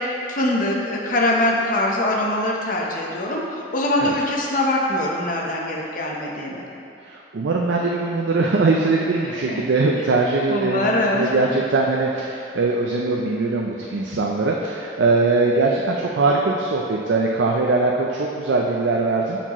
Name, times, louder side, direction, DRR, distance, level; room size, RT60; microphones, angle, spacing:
voice 1, 0.0-6.6 9.4-9.6 10.5-11.3, left 1 dB, 50° left, -2 dB, 0.9 m, -23 dB
voice 2, 7.0-19.4, right 3 dB, 80° right, -1 dB, 0.5 m, -21 dB
9.8 x 4.5 x 3.0 m, 2.6 s
head